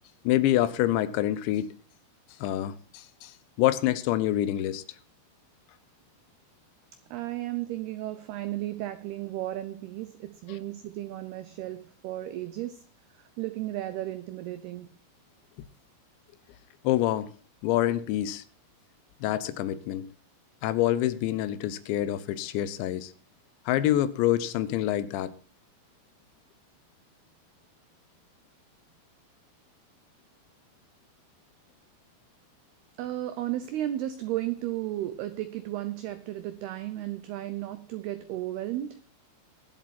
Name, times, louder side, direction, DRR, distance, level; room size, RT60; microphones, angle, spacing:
voice 1, 0.3-1.8 2.4-3.3 3.6-4.8 16.8-17.3 17.6-18.4 19.2-20.1 20.6-23.1 23.7-25.3, left 13 dB, 75° left, 2.9 m, -26 dB
voice 2, 7.1-12.8 13.1-14.9 33.0-39.0, right 14 dB, 85° right, 2.3 m, -34 dB
21.0 x 7.6 x 4.2 m
omnidirectional pair, 5.6 m